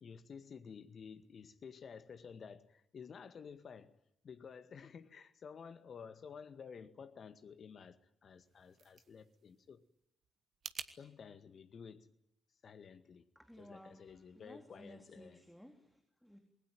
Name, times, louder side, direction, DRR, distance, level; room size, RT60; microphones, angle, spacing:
voice 1, 0.0-4.0 4.2-9.8 11.0-12.1 12.6-13.3 13.6-15.4, left 6 dB, 50° left, 1.9 m, -52 dB
sound 1, 8.3-10.9, right 7 dB, 55° right, 1.5 m, -50 dB
voice 2, 13.3-16.4, equal, ahead, 4.1 m, -57 dB
28.0 x 21.0 x 9.4 m
figure-of-eight pair, 40°, 0 cm